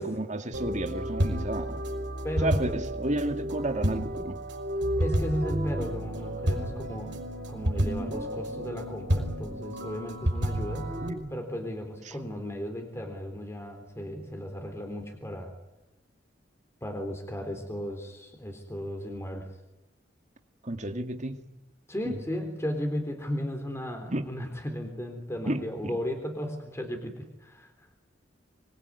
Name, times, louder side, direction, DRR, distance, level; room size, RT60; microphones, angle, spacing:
voice 1, 0.0-1.8 2.4-4.4 11.0-11.3 12.1-12.2 20.6-21.4 22.0-22.2 24.1-24.3 25.5-26.0, right 1 dB, 40° right, 7 dB, 2.2 m, -32 dB
sound 1, 0.5-11.1, equal, 70° right, 5.9 m, -31 dB
voice 2, 2.2-2.8 5.0-7.2 7.5-10.9 11.3-15.5 16.8-19.5 21.9-27.7, equal, 15° left, 5 dB, 3.6 m, -35 dB
25.5 x 22.5 x 9.7 m, 0.97 s
head